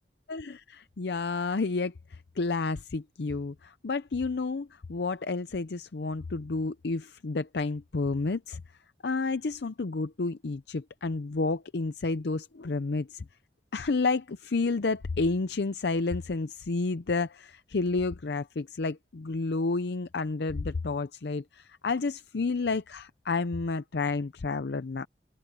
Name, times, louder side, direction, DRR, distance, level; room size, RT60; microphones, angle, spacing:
voice 1, 0.3-8.6 9.0-13.2 13.7-25.1, left 3 dB, 70° left, 0.6 m, -30 dB
open air
head